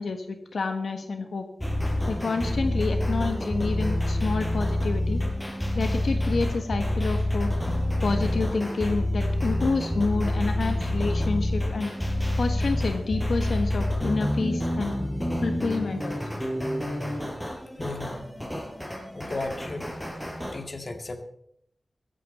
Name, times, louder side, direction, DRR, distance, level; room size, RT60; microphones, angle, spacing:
voice 1, 0.0-1.4 2.1-5.2 5.7-7.5 8.0-11.9 12.4-14.9 15.4-16.2, left 4 dB, 75° left, 6 dB, 1.4 m, -28 dB
sound 1, 1.6-20.6, left 1 dB, 10° left, 5.1 m, -28 dB
voice 2, 17.8-18.4 19.1-19.8 20.5-21.2, left 2 dB, 40° left, 6 dB, 2.0 m, -34 dB
16.0 x 14.5 x 4.3 m, 0.72 s
wide cardioid pair, 90°, 0 cm